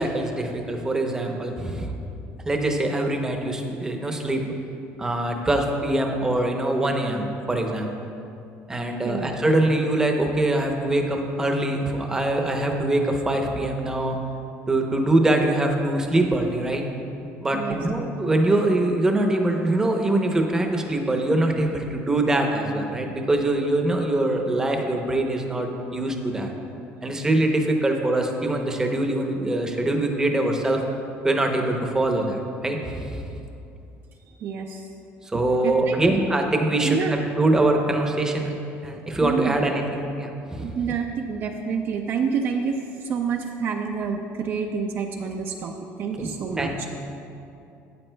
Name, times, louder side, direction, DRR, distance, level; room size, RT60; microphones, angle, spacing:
voice 1, 0.0-1.9 2.5-4.4 5.0-7.9 8.7-14.2 14.7-16.8 17.4-26.5 27.0-30.8 31.2-33.2 35.3-38.5 38.8-40.8 46.2-46.3 46.6-46.9, right 1 dB, 10° right, 3 dB, 0.7 m, -23 dB
voice 2, 34.4-34.8 35.6-36.2 36.8-37.2 39.2-39.6 40.6-45.7 46.0-46.9, right 6 dB, 45° right, 3 dB, 0.4 m, -28 dB
12.0 x 8.3 x 2.2 m, 2.7 s
cardioid pair, 145°, 5 cm